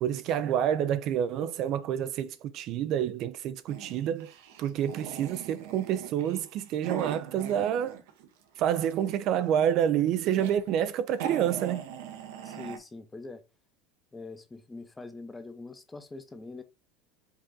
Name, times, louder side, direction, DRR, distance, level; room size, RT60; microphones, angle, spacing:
voice 1, 0.0-4.3 4.6-8.0 8.6-11.8, right 10 dB, 50° right, 0.3 m, -28 dB
sound 1, 3.7-8.3 8.6-9.4 10.0-10.5 10.9-11.0 11.1-12.8, right 8 dB, 80° right, 0.9 m, -40 dB
voice 2, 12.4-13.4 14.1-16.6, left 3 dB, 10° left, 0.6 m, -43 dB
5.3 x 2.5 x 3.7 m
supercardioid pair, 130°, 0 cm